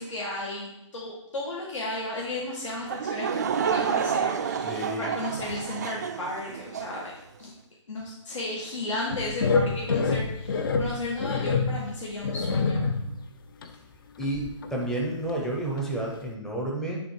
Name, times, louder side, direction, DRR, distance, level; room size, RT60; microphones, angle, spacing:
voice 1, 0.0-7.1 7.4-7.5 7.9-12.9, left 2 dB, 80° left, -4 dB, 1.8 m, -34 dB
Laughter / Crowd, 2.9-7.1, right 7 dB, 35° right, 0.4 m, -29 dB
voice 2, 4.7-5.1 14.2-14.4 14.7-17.0, right 1 dB, 5° left, -2 dB, 0.7 m, -30 dB
sound 1, 9.1-13.2 13.6-13.7 14.2-14.9 15.3-15.4 15.8-15.9, left 4 dB, 45° left, 0.7 m, -27 dB
10.0 x 3.6 x 4.6 m, 0.85 s
hypercardioid pair, 170°, 16 cm